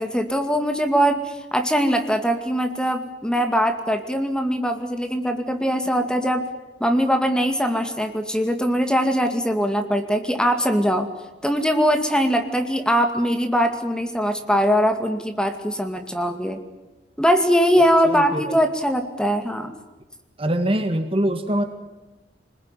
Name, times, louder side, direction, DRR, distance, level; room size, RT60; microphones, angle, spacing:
voice 1, 0.0-6.5 6.8-11.1 11.4-16.6 17.2-19.7, equal, 5° left, 5 dB, 2.3 m, -21 dB
voice 2, 18.0-18.6 20.4-21.6, right 1 dB, 30° right, 7 dB, 1.8 m, -23 dB
26.5 x 21.0 x 10.0 m, 1.1 s
head